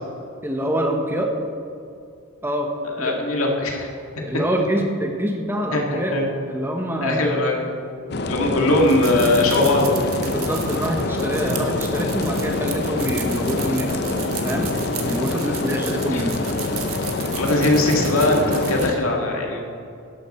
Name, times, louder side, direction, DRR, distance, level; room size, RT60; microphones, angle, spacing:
voice 1, 0.4-1.3 2.4-2.7 3.0-3.2 4.2-6.2 6.5-7.4 10.2-14.0 14.4-16.3, equal, 10° right, 2 dB, 0.9 m, -25 dB
voice 2, 3.0-3.9 5.7-6.3 7.0-7.7 8.2-10.0 16.1-16.2 17.3-19.6, left 2 dB, 80° left, 0 dB, 2.1 m, -20 dB
sound 1, 8.1-18.9, left 2 dB, 50° left, 0.7 m, -25 dB
sound 2, 8.7-18.9, right 9 dB, 80° right, 1.4 m, -35 dB
12.0 x 11.5 x 4.3 m, 2.5 s
head